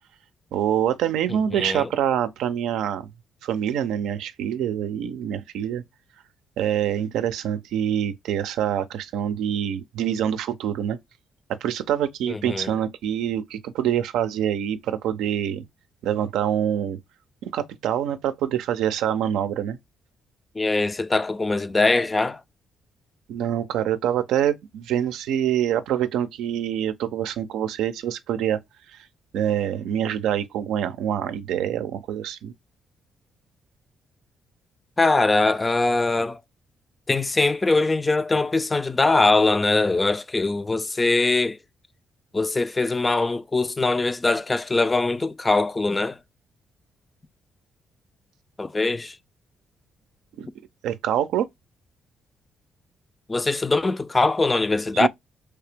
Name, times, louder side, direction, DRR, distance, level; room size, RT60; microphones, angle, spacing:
voice 1, 0.5-3.1 3.4-5.8 6.6-11.0 11.6-15.6 16.0-17.0 17.4-19.8 23.3-28.6 28.9-29.0 29.3-32.5 50.4-50.5 50.8-51.5 54.9-55.1, right 10 dB, 85° right, 0.5 m, -25 dB
voice 2, 1.3-1.9 12.3-12.7 20.6-22.4 35.0-36.4 37.1-41.6 42.3-46.2 48.6-49.2 53.3-55.1, left 3 dB, 20° left, 0.4 m, -22 dB
3.3 x 2.9 x 3.3 m
cardioid pair, 90°, 0 cm